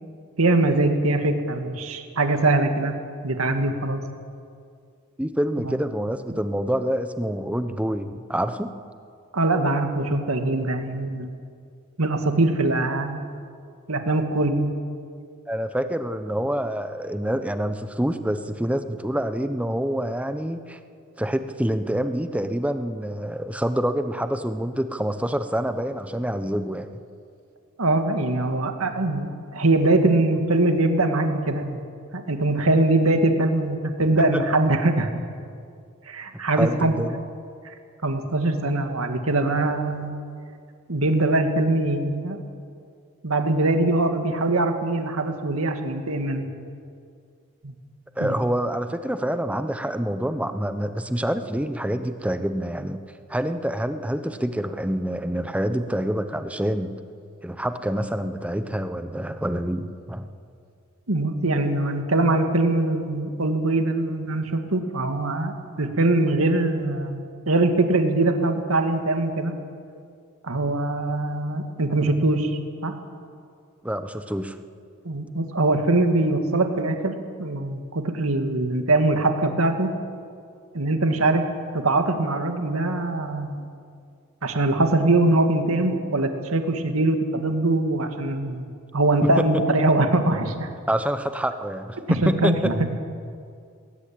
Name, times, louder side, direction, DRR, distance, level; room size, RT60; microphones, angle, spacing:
voice 1, 0.4-2.9 3.2-4.0 5.6-5.8 6.3-6.4 9.3-11.3 12.0-13.2 13.9-14.7 27.8-31.8 32.1-35.1 36.1-37.0 38.0-40.1 40.9-42.4 43.2-46.5 47.6-47.7 48.2-48.3 61.1-69.5 70.4-72.5 72.8-72.9 75.0-79.9 80.7-81.5 81.7-83.7 84.4-88.7 88.9-90.7 92.1-92.9, right 2 dB, 90° right, 6 dB, 2.0 m, -22 dB
voice 2, 5.2-8.7 15.5-20.8 21.2-26.9 34.3-34.4 36.5-37.2 48.2-53.0 53.3-56.9 57.4-60.3 73.8-74.6 89.2-89.3 90.9-92.7, equal, 5° right, 10 dB, 0.9 m, -26 dB
20.0 x 18.0 x 8.8 m, 2.3 s
head